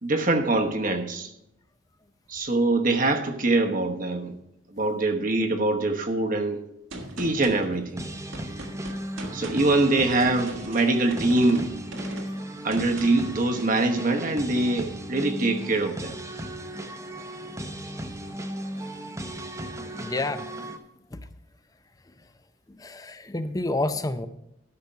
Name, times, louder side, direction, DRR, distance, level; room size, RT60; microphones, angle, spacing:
voice 1, 0.0-1.3 2.3-4.3 4.7-6.6 7.2-8.0 9.3-11.7 12.6-16.1, right 2 dB, 40° right, 1.0 m, -24 dB
Gunshot gunfire, 6.9-13.4, right 1 dB, 75° right, 1.7 m, -39 dB
sound 1, 8.0-20.8, right 1 dB, 15° right, 0.8 m, -36 dB
voice 2, 20.0-20.4 21.1-21.2 22.8-24.3, left 2 dB, 20° left, 0.5 m, -29 dB
13.0 x 5.9 x 5.5 m
head